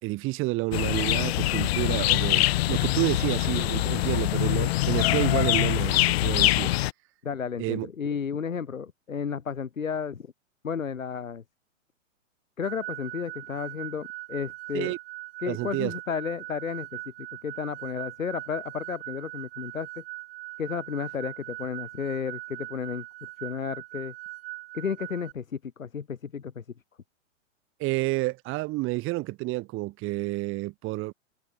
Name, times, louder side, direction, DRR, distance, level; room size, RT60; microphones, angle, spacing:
voice 1, 0.0-6.7 7.6-7.9 14.7-15.0 15.5-15.9 27.8-31.1, right 21 dB, 30° right, 4.2 m, -29 dB
sound 1, 0.7-6.9, left 17 dB, 50° left, 3.4 m, -24 dB
voice 2, 7.2-10.3 10.6-11.4 12.6-14.9 15.4-17.0 17.4-20.0 20.6-23.0 23.4-24.1 24.7-26.6, left 6 dB, 85° left, 3.7 m, -32 dB
sound 2, 12.6-25.3, right 19 dB, 50° right, 7.3 m, -41 dB
hypercardioid pair, 125°, 39 cm